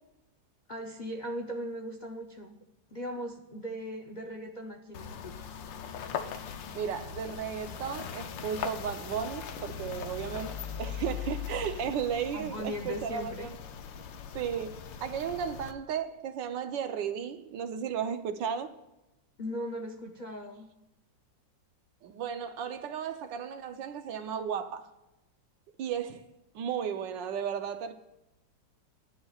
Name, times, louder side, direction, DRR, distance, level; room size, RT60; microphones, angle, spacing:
voice 1, 0.7-2.6 2.9-5.5 12.3-13.5 19.4-20.7, equal, 55° left, 0.5 m, -38 dB
sound 1, 4.9-15.7, left 7 dB, 85° left, 1.5 m, -40 dB
voice 2, 6.7-13.5 14.3-18.7 22.0-24.9 25.8-26.2 26.5-27.9, right 8 dB, 80° right, 1.4 m, -34 dB
17.0 x 11.0 x 2.4 m
omnidirectional pair, 1.9 m